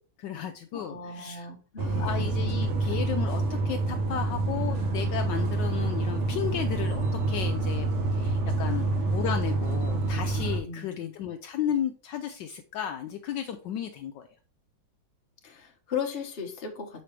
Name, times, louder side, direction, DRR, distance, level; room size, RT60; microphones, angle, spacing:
voice 1, 0.2-1.5 2.0-14.3, left 9 dB, 75° left, 6 dB, 1.1 m, -34 dB
voice 2, 0.7-2.3 8.7-9.0 10.6-11.1 15.4-17.0, left 6 dB, 35° left, 2 dB, 1.2 m, -37 dB
sound 1, 1.8-10.6, right 2 dB, 45° right, 1.1 m, -27 dB
6.6 x 5.1 x 3.3 m, 0.38 s
omnidirectional pair, 2.2 m